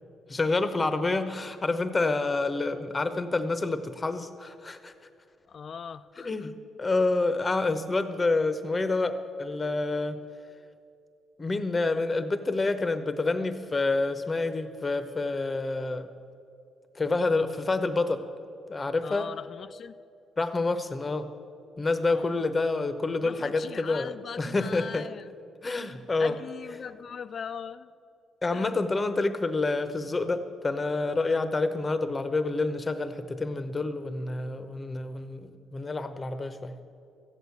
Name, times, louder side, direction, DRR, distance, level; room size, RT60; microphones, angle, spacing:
voice 1, 0.3-4.9 6.2-10.2 11.4-16.1 16.9-18.2 18.7-19.3 20.4-21.3 21.8-25.1 25.6-26.4 28.4-36.7, left 3 dB, 25° left, 10 dB, 0.9 m, -28 dB
voice 2, 5.5-6.5 17.1-17.2 19.0-19.9 22.1-22.5 23.2-25.3 26.2-27.9 28.5-28.7, left 6 dB, 50° left, 12 dB, 0.4 m, -40 dB
14.5 x 8.0 x 8.3 m, 2.6 s
cardioid pair, 90°, 0 cm